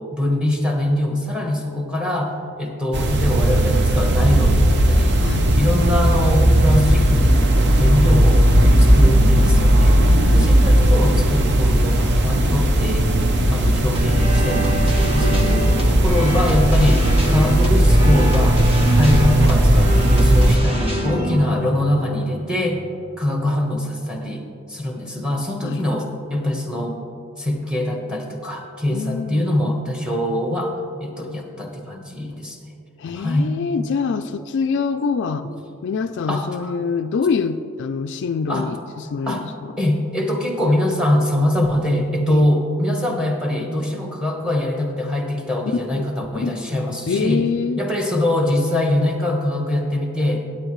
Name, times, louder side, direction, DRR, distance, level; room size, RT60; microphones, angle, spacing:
voice 1, 0.0-5.2 5.5-10.0 10.3-13.1 13.5-18.6 18.9-22.8 23.2-24.4 24.7-27.0 27.4-32.6 33.2-33.5 35.4-35.5 36.3-36.7 38.5-38.7 39.3-39.4 39.8-47.4 47.8-50.4, left 1 dB, 5° right, 2 dB, 1.1 m, -23 dB
sound 1, 2.9-20.6, right 1 dB, 50° right, 0.7 m, -16 dB
voice 2, 10.0-10.5 15.2-15.8 25.6-25.8 28.9-29.5 33.0-35.5 35.8-39.8 42.3-42.4 45.9-46.1 46.4-46.6 47.1-47.8, left 5 dB, 55° left, 9 dB, 0.3 m, -25 dB
sound 2, 13.9-23.1, right 1 dB, 25° right, 1.3 m, -26 dB
15.5 x 8.6 x 3.1 m, 2.6 s
head